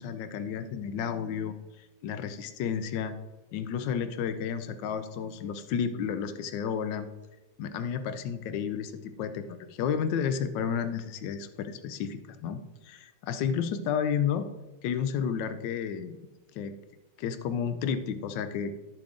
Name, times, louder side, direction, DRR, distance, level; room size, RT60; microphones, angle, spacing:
voice 1, 0.0-3.1 3.5-7.1 7.6-8.9 9.2-14.5 14.8-16.2 16.6-16.8 17.2-18.7, left 7 dB, 85° left, 10 dB, 1.3 m, -31 dB
11.0 x 7.0 x 3.8 m, 1.1 s
omnidirectional pair, 1.9 m